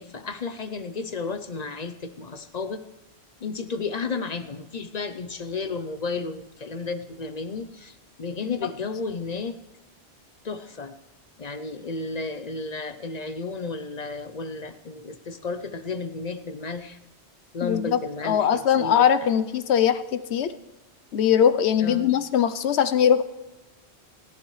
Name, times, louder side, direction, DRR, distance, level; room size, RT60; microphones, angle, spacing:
voice 1, 0.0-2.8 3.4-9.6 10.4-10.9 11.4-17.0 17.5-19.3 21.8-22.1, left 4 dB, 45° left, 10 dB, 0.7 m, -33 dB
voice 2, 17.6-20.5 21.1-23.2, left 8 dB, 80° left, 12 dB, 1.0 m, -21 dB
20.0 x 14.0 x 3.2 m, 1.0 s
omnidirectional pair, 1.1 m